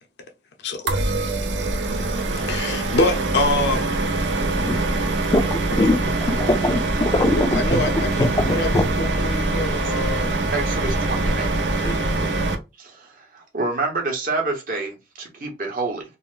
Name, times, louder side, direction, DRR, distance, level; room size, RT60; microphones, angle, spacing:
sound 1, 0.9-12.5, right 2 dB, 90° right, 0.5 m, -23 dB
voice 1, 2.5-3.8 7.3-8.2 8.5-8.7 9.0-10.3 11.8-12.2, left 2 dB, 75° left, 0.6 m, -25 dB
voice 2, 5.3-6.0 6.4-7.8 8.2-8.8, left 1 dB, 25° left, 0.4 m, -21 dB
voice 3, 10.5-11.8 12.8-16.0, right 3 dB, 50° right, 0.9 m, -28 dB
3.9 x 2.0 x 2.4 m
head